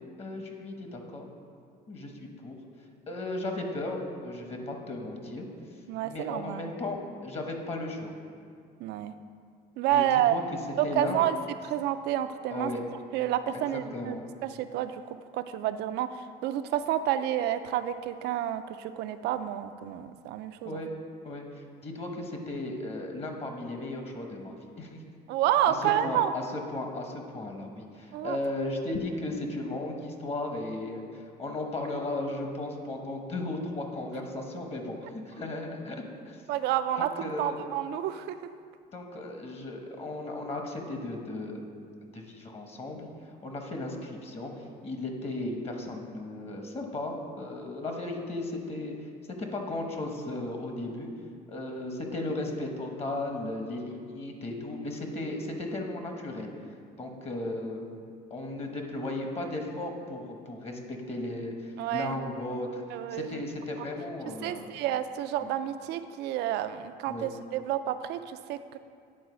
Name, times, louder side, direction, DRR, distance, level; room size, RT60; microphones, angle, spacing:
voice 1, 0.2-1.3 1.9-2.6 3.1-5.5 6.0-8.1 9.9-10.4 10.8-11.2 12.5-12.8 13.5-14.2 20.6-20.9 21.2-25.0 25.7-36.4 37.0-37.6 38.9-41.7 42.1-48.9 49.4-51.1 51.5-56.5 57.0-57.8 58.3-62.8 63.1-64.6 65.4-65.5 67.1-67.3, left 2 dB, 35° left, 3 dB, 1.0 m, -35 dB
voice 2, 5.9-6.7 8.8-9.1 9.8-10.4 10.8-11.4 11.6-12.7 13.1-15.0 15.3-16.1 16.4-20.8 25.3-26.3 28.1-28.4 36.5-38.4 61.8-62.2 62.9-63.4 64.4-68.8, right 11 dB, 80° right, 11 dB, 0.4 m, -29 dB
8.9 x 3.9 x 5.0 m, 2.2 s
cardioid pair, 110°, 17 cm